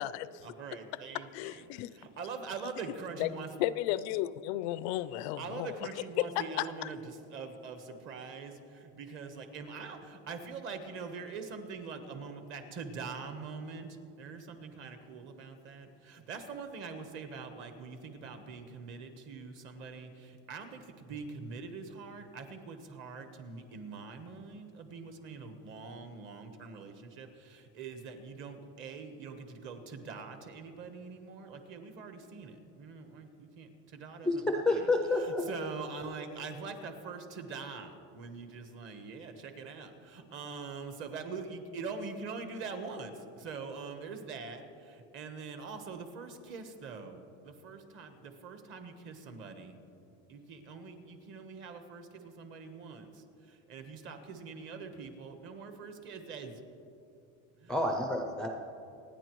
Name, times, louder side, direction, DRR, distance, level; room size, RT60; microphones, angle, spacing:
voice 1, 0.4-3.5 5.4-49.7 50.3-56.6 57.6-57.8, right 4 dB, 40° right, 7 dB, 1.1 m, -44 dB
voice 2, 1.1-1.9 3.2-3.3 3.6-5.8 6.2-6.9 7.9-8.0, left 14 dB, 90° left, 16 dB, 0.5 m, -33 dB
voice 3, 34.2-35.4 57.7-58.5, left 2 dB, ahead, 1 dB, 0.4 m, -29 dB
27.0 x 9.7 x 3.1 m, 2.7 s
cardioid pair, 180°, 32 cm